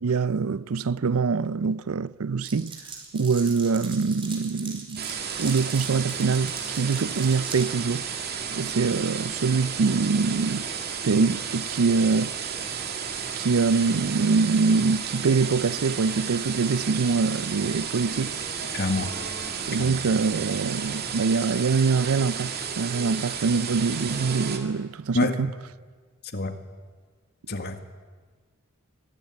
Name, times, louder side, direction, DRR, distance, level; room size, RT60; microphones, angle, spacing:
voice 1, 0.0-2.8 3.1-8.1 8.5-10.7 11.0-12.3 13.4-18.4 19.7-25.5, right 4 dB, 80° right, 0.5 m, -24 dB
Glass, 2.4-7.7, right 5 dB, 25° right, 4.3 m, -40 dB
sound 1, 5.0-24.6, right 6 dB, 50° right, 2.3 m, -33 dB
voice 2, 18.7-19.1 19.8-20.0 25.1-25.4 26.3-26.5 27.5-27.8, left 2 dB, 50° left, 1.8 m, -26 dB
23.0 x 14.5 x 9.5 m
head